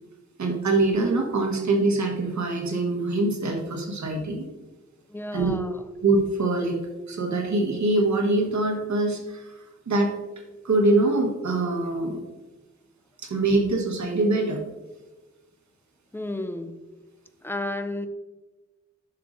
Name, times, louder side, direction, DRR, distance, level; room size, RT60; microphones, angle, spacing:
voice 1, 0.4-4.5 5.3-5.5 6.0-6.8 7.1-10.1 10.4-12.2 13.2-14.6, right 2 dB, 75° right, 2 dB, 1.3 m, -24 dB
voice 2, 5.1-5.8 16.1-16.8 17.4-18.1, left 1 dB, 10° left, 8 dB, 0.5 m, -32 dB
10.5 x 6.2 x 2.6 m, 1.2 s
wide cardioid pair, 120°, 29 cm